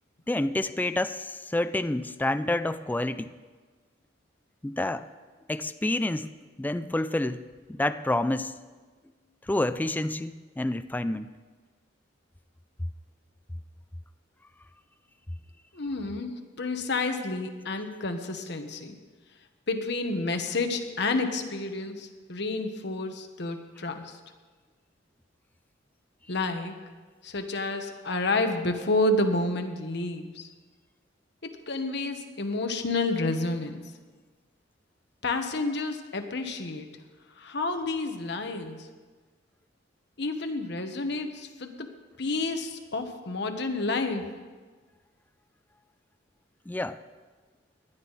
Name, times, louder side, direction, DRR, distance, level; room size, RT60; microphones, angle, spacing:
voice 1, 0.3-3.3 4.6-5.1 5.5-6.3 6.6-7.4 7.7-8.5 9.5-11.3 46.7-47.0, left 1 dB, 10° left, 11 dB, 0.3 m, -28 dB
voice 2, 15.7-19.0 19.7-24.2 26.3-26.8 27.2-30.5 31.4-33.8 35.2-36.9 37.4-38.9 40.2-44.3, left 2 dB, 65° left, 6 dB, 1.2 m, -30 dB
19.0 x 11.5 x 4.1 m, 1.4 s
head